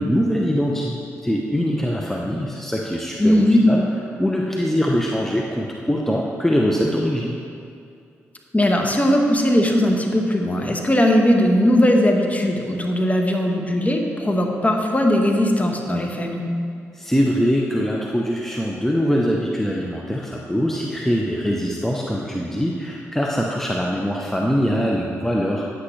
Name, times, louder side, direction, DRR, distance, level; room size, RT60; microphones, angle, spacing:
voice 1, 0.0-3.8 4.2-7.4 16.9-25.6, equal, 5° left, -1 dB, 0.9 m, -23 dB
voice 2, 3.2-3.6 8.5-16.4, left 1 dB, 25° left, 2 dB, 1.3 m, -19 dB
9.4 x 8.4 x 3.3 m, 2.4 s
hypercardioid pair, 40°, 6 cm